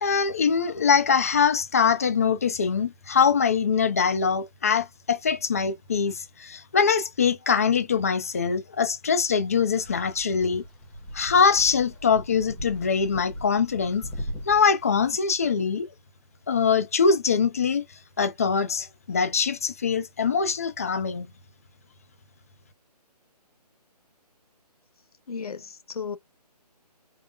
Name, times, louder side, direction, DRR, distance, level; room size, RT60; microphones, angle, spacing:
voice 1, 0.0-10.6 11.1-14.1 14.5-15.9 16.5-17.8 18.2-21.3, left 6 dB, 20° left, 0.5 m, -23 dB
sound 1, 9.7-15.1, equal, 5° left, 0.9 m, -39 dB
voice 2, 25.3-26.2, left 6 dB, 60° left, 1.3 m, -34 dB
5.3 x 2.1 x 2.2 m
hypercardioid pair, 165°, 21 cm